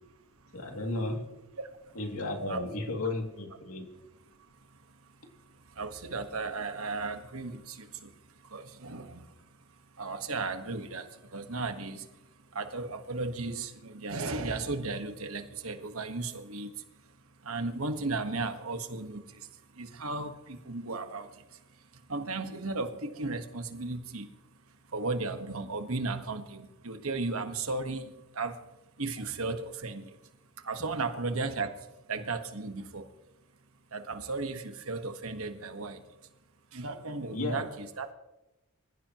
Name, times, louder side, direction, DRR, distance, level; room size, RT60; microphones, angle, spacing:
voice 1, 0.5-1.3 1.9-3.9 37.3-37.6, left 2 dB, 90° left, 2 dB, 2.6 m, -34 dB
voice 2, 1.6-1.9 2.5-2.6 4.3-24.3 24.9-30.2 30.6-33.1 33.9-36.3 36.7-38.1, right 3 dB, 85° right, 7 dB, 1.5 m, -36 dB
25.0 x 15.0 x 3.1 m, 0.99 s
head